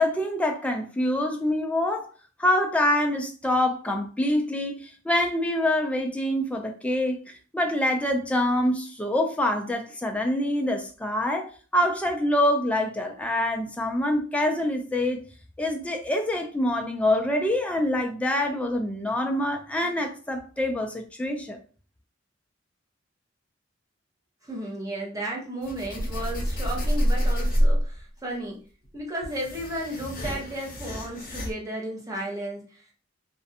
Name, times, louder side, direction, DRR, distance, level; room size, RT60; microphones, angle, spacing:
voice 1, 0.0-2.1 2.4-15.2 15.6-21.6, left 1 dB, 5° left, 0.3 m, -25 dB
voice 2, 24.4-28.6 28.9-32.8, right 1 dB, 20° right, 0.8 m, -34 dB
sound 1, 25.6-28.0 28.8-31.5, equal, 50° left, 0.7 m, -27 dB
2.4 x 2.1 x 2.7 m
head